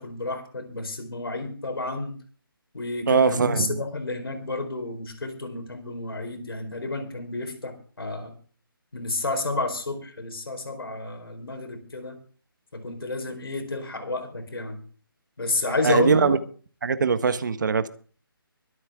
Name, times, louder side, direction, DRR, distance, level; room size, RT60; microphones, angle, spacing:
voice 1, 0.0-2.2 2.7-8.4 8.9-12.2 12.7-14.8 15.4-16.4, left 2 dB, 75° left, 4.5 m, -30 dB
voice 2, 3.1-3.7 15.8-16.4 16.8-17.9, right 5 dB, 55° right, 1.4 m, -21 dB
24.0 x 8.7 x 3.7 m
figure-of-eight pair, 155°, 12 cm